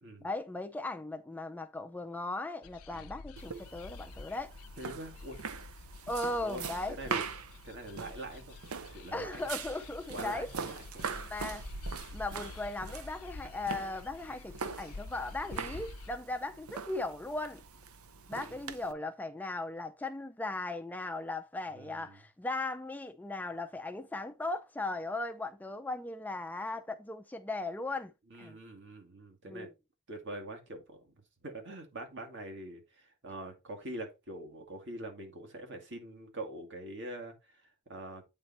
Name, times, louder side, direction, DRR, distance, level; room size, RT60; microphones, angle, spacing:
voice 1, 0.2-4.6 6.1-7.0 9.1-10.5 11.3-11.7 12.1-17.6 18.3-28.6 29.5-29.7, left 2 dB, 10° left, 0.4 m, -38 dB
sound 1, 2.6-16.2, left 3 dB, 80° left, 0.6 m, -49 dB
sound 2, 3.4-18.9, right 5 dB, 80° right, 0.7 m, -42 dB
voice 2, 4.8-5.4 6.4-7.2 7.6-9.4 10.1-11.1 18.3-18.6 21.8-22.2 28.3-29.7 30.1-38.2, right 1 dB, 55° right, 2.2 m, -44 dB
8.7 x 4.0 x 4.2 m
head